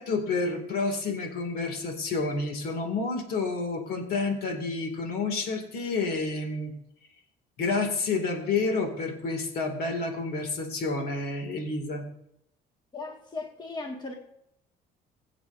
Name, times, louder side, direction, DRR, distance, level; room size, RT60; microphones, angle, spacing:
voice 1, 0.0-6.8 7.6-12.1, left 3 dB, 65° left, 4 dB, 2.4 m, -29 dB
voice 2, 12.9-14.1, left 3 dB, 25° left, 1 dB, 1.9 m, -37 dB
20.5 x 8.3 x 2.7 m, 0.76 s
cardioid pair, 110°, 17 cm